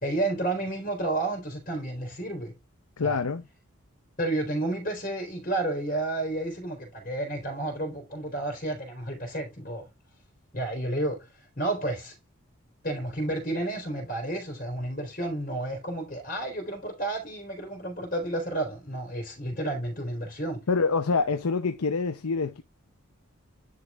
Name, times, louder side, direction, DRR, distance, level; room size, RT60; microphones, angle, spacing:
voice 1, 0.0-2.5 3.0-3.2 4.2-9.9 10.5-11.3 11.6-12.1 12.8-20.6, right 2 dB, 40° left, 3.3 m, -31 dB
voice 2, 3.0-3.4 20.7-22.6, left 4 dB, 80° left, 0.7 m, -26 dB
10.5 x 4.1 x 3.6 m
head